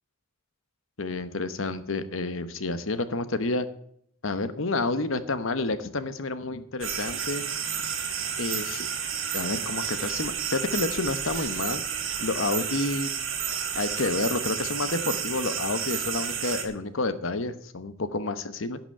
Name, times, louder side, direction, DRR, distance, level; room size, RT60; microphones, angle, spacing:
voice 1, 1.0-3.7 4.2-7.4 8.4-8.9 9.3-11.8 12.2-13.1 13.7-18.8, left 3 dB, 75° left, 12 dB, 1.0 m, -29 dB
sound 1, 6.8-16.6, right 8 dB, 75° right, 2.2 m, -31 dB
11.0 x 6.1 x 8.5 m, 0.68 s
head